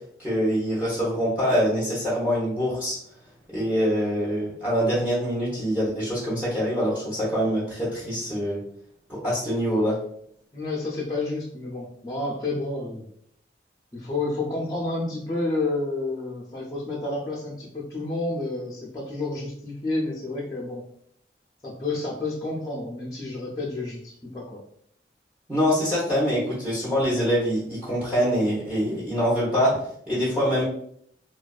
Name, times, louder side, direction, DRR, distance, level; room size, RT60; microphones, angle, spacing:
voice 1, 0.2-3.0 3.5-8.6 9.1-10.0 25.5-29.8 30.1-30.6, equal, 10° right, -8 dB, 0.8 m, -24 dB
voice 2, 10.5-13.1 13.9-20.8 21.6-24.6, left 2 dB, 20° left, -4 dB, 0.4 m, -30 dB
2.5 x 2.2 x 2.3 m, 0.67 s
head